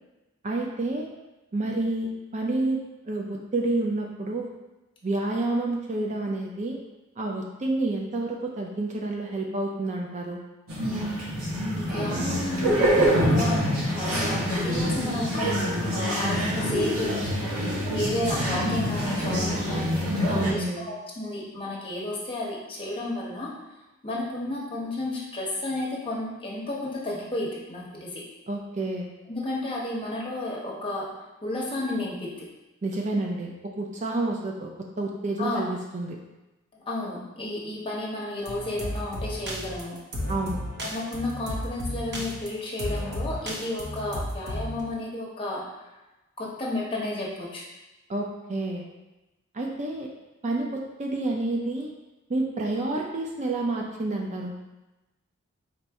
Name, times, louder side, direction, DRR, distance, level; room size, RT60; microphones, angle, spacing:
voice 1, 0.4-1.1 1.5-4.5 5.0-6.8 7.2-10.4 20.3-20.9 28.5-29.1 32.8-34.7 35.0-36.2 40.3-40.6 48.1-48.8 49.5-50.1 50.4-51.9 52.3-54.5, right 2 dB, 35° right, 0 dB, 0.5 m, -29 dB
sound 1, 10.7-20.5, equal, 85° right, 1.2 m, -26 dB
voice 2, 11.7-15.6 15.9-17.2 17.9-23.6 24.0-28.2 29.3-31.1 31.4-32.5 35.4-35.6 36.9-40.0 40.8-45.7 46.4-47.6, left 2 dB, 25° left, -4 dB, 1.0 m, -32 dB
sound 2, 38.4-44.8, equal, 50° right, 0.8 m, -33 dB
4.2 x 2.6 x 4.6 m, 1.0 s
head